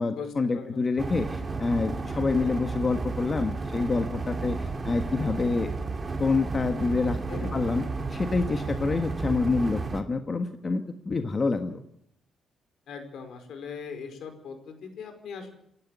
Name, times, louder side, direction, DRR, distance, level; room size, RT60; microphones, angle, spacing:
voice 1, 0.0-5.7 6.2-7.2 7.5-7.8 8.1-11.8, left 3 dB, 30° left, 6 dB, 1.4 m, -27 dB
voice 2, 0.5-0.9 7.3-7.6 12.9-15.5, left 6 dB, 70° left, 6 dB, 5.1 m, -40 dB
sound 1, 1.0-10.0, right 3 dB, 30° right, 2.5 m, -32 dB
28.5 x 12.0 x 8.3 m, 0.74 s
cardioid pair, 110°, 0 cm